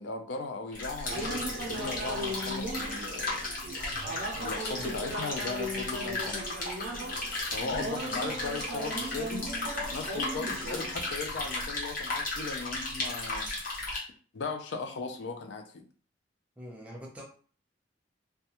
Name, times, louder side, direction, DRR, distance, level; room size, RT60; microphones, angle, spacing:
voice 1, 0.0-3.5 4.3-6.5 7.5-13.9 14.3-15.9, left 3 dB, 70° left, 5 dB, 0.4 m, -38 dB
sound 1, 0.7-14.0, left 2 dB, 50° left, 0.8 m, -35 dB
sound 2, 1.1-11.5, right 1 dB, 85° right, 0.4 m, -38 dB
voice 2, 16.6-17.2, equal, 5° right, -3 dB, 0.6 m, -44 dB
2.2 x 2.2 x 2.8 m, 0.41 s
head